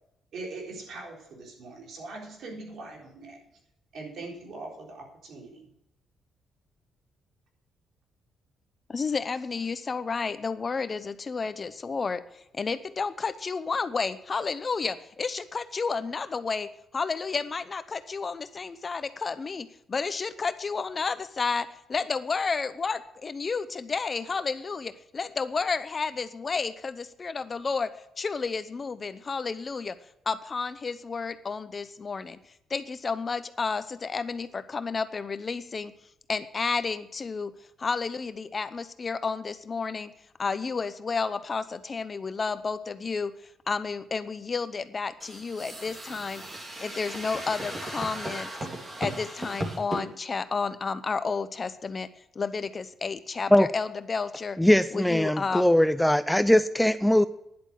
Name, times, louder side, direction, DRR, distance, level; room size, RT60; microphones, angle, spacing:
voice 1, 0.3-3.4 3.9-5.7, right 3 dB, 70° right, -1 dB, 3.9 m, -41 dB
voice 2, 8.9-30.0 30.3-32.4 32.7-35.9 36.3-37.5 37.8-40.1 40.4-43.3 43.7-46.4 46.8-48.5 49.0-52.1 52.3-54.6 54.9-55.7, left 4 dB, 35° left, 13 dB, 0.7 m, -31 dB
sound 1, 45.2-50.0, right 1 dB, 30° right, 3.2 m, -36 dB
voice 3, 54.6-57.3, left 1 dB, 5° left, 13 dB, 0.5 m, -21 dB
10.5 x 8.0 x 7.6 m, 0.79 s
cardioid pair, 90°, 0 cm